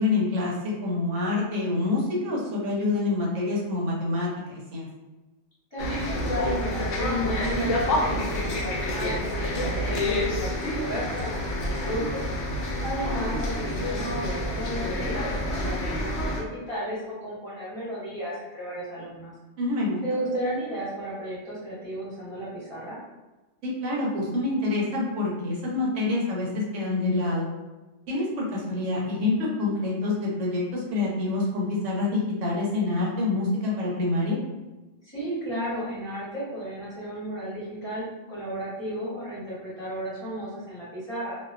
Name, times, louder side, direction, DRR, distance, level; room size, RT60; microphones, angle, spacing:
voice 1, 0.0-4.9 19.6-20.0 23.6-27.5 28.1-34.4, left 2 dB, 90° right, -4 dB, 1.1 m, -27 dB
voice 2, 5.7-12.2 12.8-19.3 20.0-23.0 35.0-41.4, equal, 25° left, -10 dB, 0.9 m, -34 dB
sound 1, 5.8-16.4, left 1 dB, 75° left, 0.9 m, -28 dB
2.4 x 2.2 x 2.4 m, 1.1 s
omnidirectional pair, 1.2 m